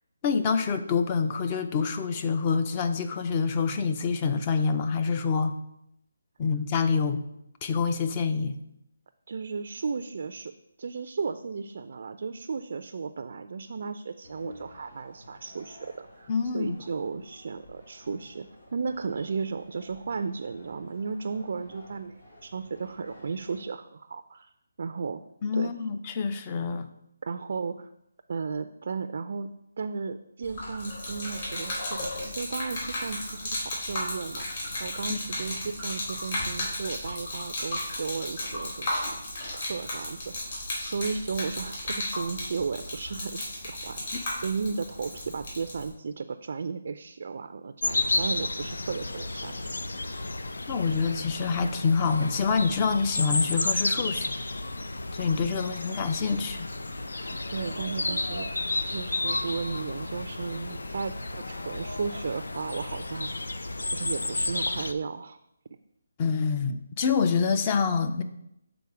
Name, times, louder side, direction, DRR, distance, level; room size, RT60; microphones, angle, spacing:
voice 1, 0.2-5.5 6.4-7.2 7.6-8.6 16.3-16.8 25.4-26.9 35.1-35.2 50.7-54.4 55.1-56.7 66.2-68.2, left 5 dB, 25° left, 8 dB, 0.4 m, -26 dB
voice 2, 9.3-10.5 10.8-22.2 22.4-24.5 24.8-25.2 25.5-25.7 27.2-27.9 28.3-29.5 29.8-34.5 34.8-39.1 39.5-49.6 57.5-58.5 58.8-63.3 63.9-65.4, right 5 dB, 55° right, 9 dB, 0.3 m, -34 dB
sound 1, 14.2-23.6, left 1 dB, 70° left, 2.4 m, -52 dB
Gurgling / Liquid, 30.4-45.9, left 1 dB, 50° left, 2.8 m, -34 dB
sound 2, 47.8-64.9, left 2 dB, 85° left, 0.5 m, -32 dB
6.9 x 3.9 x 4.8 m, 0.81 s
hypercardioid pair, 165°, 0 cm